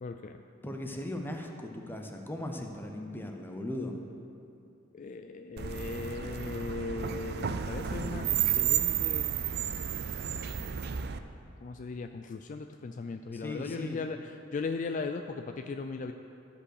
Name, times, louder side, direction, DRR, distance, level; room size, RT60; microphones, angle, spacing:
voice 1, 0.0-0.4 4.9-9.3 11.6-16.1, left 4 dB, 40° left, 6 dB, 0.3 m, -38 dB
voice 2, 0.6-4.0 13.3-14.0, left 1 dB, 10° left, 3 dB, 0.8 m, -38 dB
sound 1, 5.6-11.2, right 9 dB, 55° right, 0.5 m, -32 dB
12.5 x 5.2 x 6.5 m, 2.6 s
head